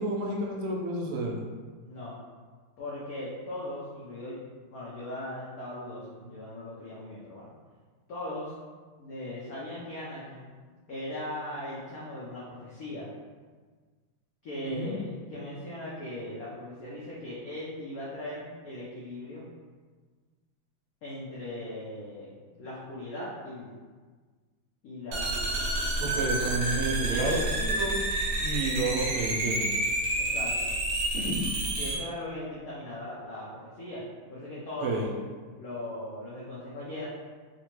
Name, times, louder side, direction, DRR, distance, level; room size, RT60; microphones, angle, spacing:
voice 1, 0.0-1.4 14.6-15.0 26.0-27.9 28.4-29.7 31.1-31.5 34.8-35.1, right 2 dB, 85° right, -1 dB, 1.5 m, -30 dB
voice 2, 2.8-4.4 4.7-7.5 8.1-8.5 9.0-10.5 10.9-13.1 14.4-19.4 21.0-23.7 24.8-25.5 26.7-27.7 30.2-30.7 31.8-34.0 34.3-35.0 35.6-37.0, left 1 dB, 90° left, -7 dB, 0.7 m, -39 dB
sound 1, 25.1-32.0, right 1 dB, 65° right, 1.3 m, -29 dB
3.9 x 2.2 x 2.9 m, 1.5 s
omnidirectional pair, 2.4 m